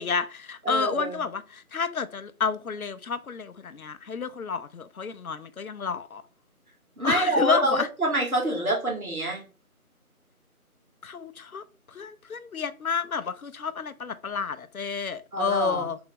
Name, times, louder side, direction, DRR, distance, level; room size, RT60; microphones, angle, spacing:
voice 1, 0.0-6.2 7.0-7.9 11.0-11.6 11.9-16.0, left 5 dB, 70° left, 0.5 m, -30 dB
voice 2, 0.6-1.2 7.0-9.4 15.3-15.9, right 1 dB, 70° right, 2.0 m, -26 dB
3.5 x 3.5 x 3.3 m
figure-of-eight pair, 175°, 44 cm